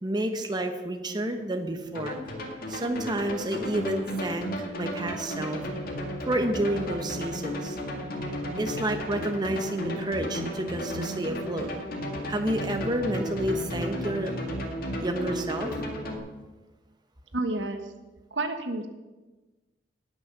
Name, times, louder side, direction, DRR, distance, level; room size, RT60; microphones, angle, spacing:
voice 1, 0.0-2.2 2.7-5.6 6.3-7.8 8.6-11.7 12.3-14.3 15.0-15.7, right 1 dB, 25° right, 5 dB, 1.1 m, -30 dB
sound 1, 1.9-16.2, equal, 55° left, 2.1 m, -34 dB
voice 2, 17.3-17.8 18.3-18.9, right 2 dB, 80° right, 7 dB, 1.4 m, -29 dB
18.5 x 6.3 x 6.8 m, 1.2 s
head